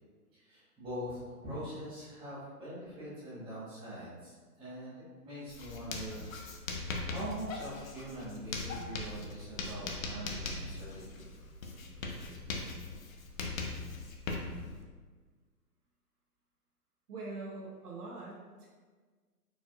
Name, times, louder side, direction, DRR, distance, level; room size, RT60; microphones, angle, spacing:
voice 1, 0.3-6.2 6.5-11.3, equal, 10° right, -12 dB, 1.5 m, -43 dB
Writing, 5.5-14.8, left 3 dB, 60° left, 0.8 m, -40 dB
voice 2, 17.1-18.7, right 3 dB, 75° right, -4 dB, 1.4 m, -43 dB
4.8 x 4.0 x 2.5 m, 1.5 s
hypercardioid pair, 150°, 47 cm